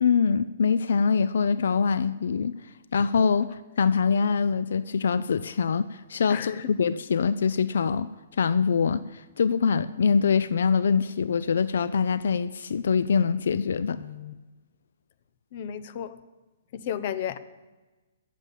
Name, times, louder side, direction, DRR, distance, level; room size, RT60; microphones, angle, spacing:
voice 1, 0.0-2.6 2.9-8.1 8.4-14.0, left 6 dB, 75° left, 15 dB, 0.5 m, -24 dB
voice 2, 6.3-6.7 14.0-14.3 15.5-16.2 16.7-17.4, left 9 dB, 40° left, 14 dB, 0.8 m, -33 dB
15.5 x 7.3 x 9.1 m, 1.2 s
hypercardioid pair, 165°, 0 cm